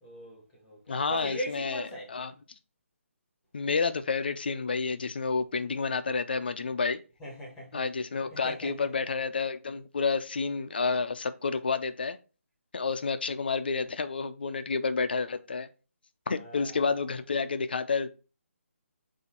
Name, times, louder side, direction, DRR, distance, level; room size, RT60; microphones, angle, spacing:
voice 1, 0.0-2.1 7.2-7.8 8.3-8.7 16.4-16.8, right 1 dB, 5° left, 1.2 m, -40 dB
voice 2, 0.9-2.3 3.5-7.0 7.7-12.2 12.7-15.7 16.3-18.1, left 4 dB, 45° left, 0.6 m, -30 dB
8.1 x 2.8 x 4.3 m
hypercardioid pair, 175°, 8 cm